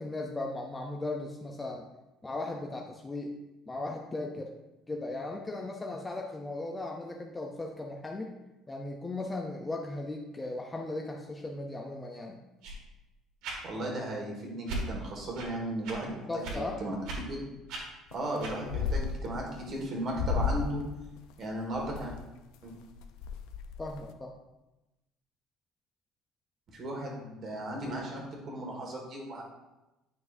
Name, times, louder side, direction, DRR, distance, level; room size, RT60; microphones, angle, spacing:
voice 1, 0.0-1.9 2.2-3.3 3.7-4.5 4.9-8.3 8.7-12.4 16.3-16.8 23.8-24.3, left 2 dB, 10° left, 1 dB, 0.5 m, -37 dB
sound 1, 12.6-12.8 13.4-13.6 14.6-14.8 15.3-15.5 15.8-16.0 16.4-16.6 17.0-17.2 17.7-17.8 18.4-18.6, right 2 dB, 65° right, 1.7 m, -37 dB
voice 2, 13.6-17.0 17.3-17.4 18.1-20.8 21.4-22.1 22.6-22.7 26.7-29.4, right 1 dB, 35° right, 0 dB, 1.7 m, -36 dB
sound 2, 18.1-18.4 18.6-19.7 20.1-20.8 21.2-22.2 22.7-22.8 23.0-24.1, left 5 dB, 85° left, 0.6 m, -32 dB
9.4 x 5.9 x 2.6 m, 1.0 s
cardioid pair, 170°, 0 cm